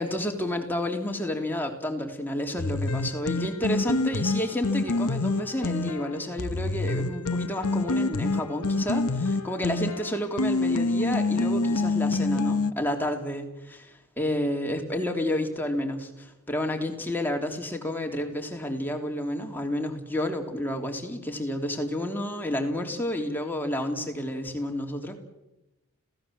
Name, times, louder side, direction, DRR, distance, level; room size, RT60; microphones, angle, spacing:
voice 1, 0.0-25.2, left 1 dB, 10° left, 3 dB, 3.2 m, -30 dB
sound 1, 2.6-12.7, left 3 dB, 90° left, 1.2 m, -27 dB
29.5 x 17.0 x 7.7 m, 1.0 s
head